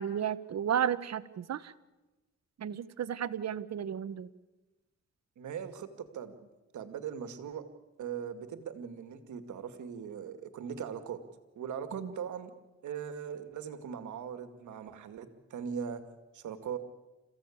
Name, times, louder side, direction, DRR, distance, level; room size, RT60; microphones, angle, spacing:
voice 1, 0.0-1.7 2.6-4.3 11.9-12.1, right 9 dB, 65° right, 14 dB, 1.1 m, -33 dB
voice 2, 5.4-7.6 8.0-11.2 11.6-12.5 12.8-16.0 16.3-16.8, right 7 dB, 85° right, 9 dB, 2.1 m, -40 dB
28.0 x 15.5 x 8.6 m, 1.1 s
cardioid pair, 80°, 29 cm